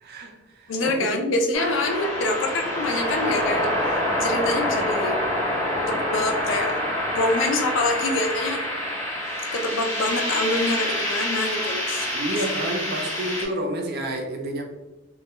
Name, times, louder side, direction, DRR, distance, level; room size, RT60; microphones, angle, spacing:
voice 1, 0.0-1.2 12.1-14.6, right 1 dB, 55° right, 2 dB, 0.4 m, -30 dB
voice 2, 0.7-3.7 4.2-5.2 5.9-6.7 7.2-8.6 9.5-12.2, left 2 dB, 80° left, 3 dB, 0.4 m, -25 dB
sound 1, 1.5-13.5, left 1 dB, 15° left, 0.8 m, -26 dB
2.2 x 2.1 x 2.9 m, 1.1 s
head